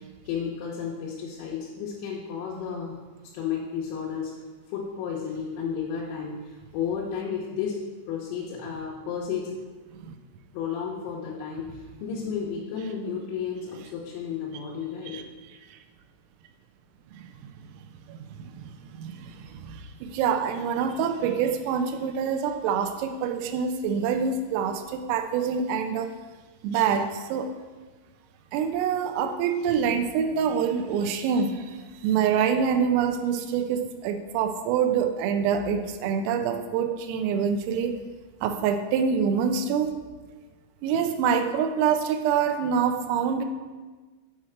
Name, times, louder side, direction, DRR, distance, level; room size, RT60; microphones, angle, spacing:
voice 1, 0.0-3.0 3.3-4.3 4.7-7.8 8.1-9.6 10.5-15.2, left 7 dB, 90° left, -5 dB, 3.7 m, -32 dB
voice 2, 18.1-26.1 26.6-27.5 28.5-38.0 38.4-39.9 40.8-43.5, right 7 dB, 85° right, 7 dB, 3.3 m, -26 dB
8.4 x 4.3 x 4.9 m, 1.3 s
omnidirectional pair, 5.9 m